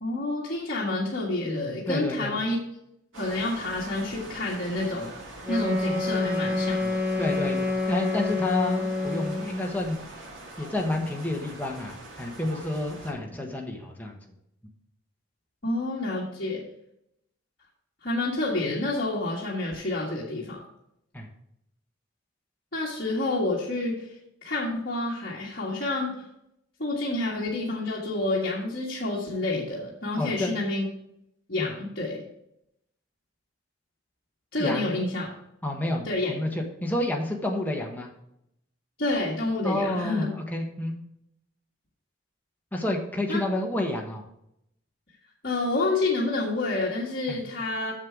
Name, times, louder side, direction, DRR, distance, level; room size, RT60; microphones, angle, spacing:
voice 1, 0.0-2.6 3.2-5.1 5.5-7.1 15.6-16.6 18.0-20.6 22.7-24.1 24.4-26.2 26.8-30.8 31.5-32.2 34.5-35.3 36.0-36.3 39.0-40.3 43.3-43.4 45.4-47.9, left 2 dB, 50° left, -6 dB, 1.7 m, -28 dB
voice 2, 1.9-2.3 7.2-7.6 7.9-10.0 10.6-14.1 21.1-21.3 30.2-30.5 31.6-31.7 34.6-34.9 35.6-38.1 39.6-41.0 42.7-44.2 47.3-47.4, left 1 dB, 10° left, 0 dB, 1.2 m, -29 dB
sound 1, 3.1-13.1, right 1 dB, 85° right, 2.5 m, -43 dB
Wind instrument woodwind instrument, 5.4-9.6, left 2 dB, 10° right, 1.5 m, -28 dB
7.5 x 6.8 x 4.6 m, 0.78 s
head